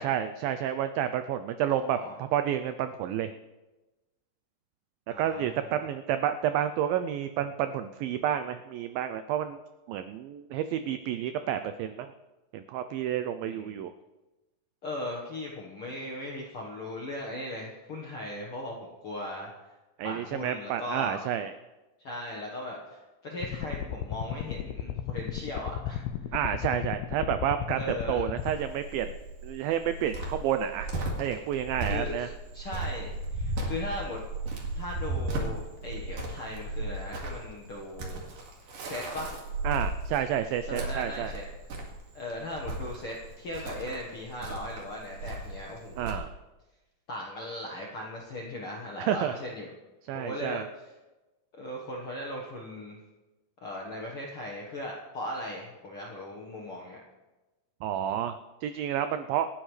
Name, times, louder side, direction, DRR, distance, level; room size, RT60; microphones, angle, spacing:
voice 1, 0.0-3.3 5.2-9.6 9.9-12.1 12.5-13.9 20.0-21.5 26.3-29.1 29.4-30.9 31.2-32.3 39.6-41.3 46.0-46.3 49.0-49.3 50.1-50.7 57.8-59.5, right 10 dB, 90° right, 10 dB, 2.0 m, -30 dB
voice 2, 1.7-2.1 5.1-5.8 13.4-13.8 14.8-19.5 20.0-21.3 22.0-26.0 27.7-28.3 31.8-34.2 34.8-38.2 38.8-39.4 40.7-41.5 42.1-46.1 47.1-49.7 50.1-50.8 51.6-53.0 53.6-57.0, left 1 dB, 65° left, -2 dB, 1.4 m, -38 dB
sound 1, 23.4-28.5, left 10 dB, 80° left, 2.5 m, -35 dB
Cricket, 28.4-46.1, right 2 dB, 55° right, 3.3 m, -35 dB
28.0 x 9.9 x 3.3 m, 1.1 s
omnidirectional pair, 4.7 m